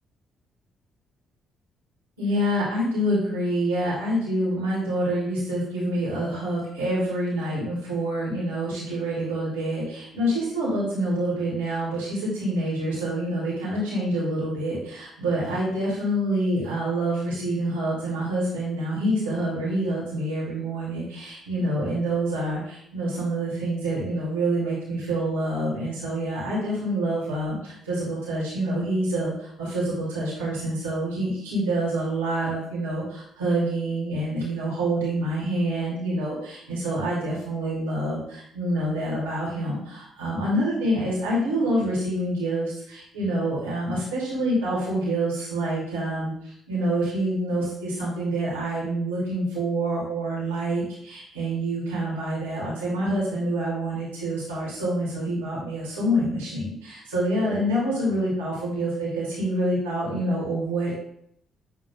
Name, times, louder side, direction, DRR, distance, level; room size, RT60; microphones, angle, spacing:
voice 1, 2.2-61.0, right 1 dB, 85° right, -6 dB, 2.2 m, -27 dB
8.2 x 3.2 x 3.9 m, 0.70 s
figure-of-eight pair, 45°, 0 cm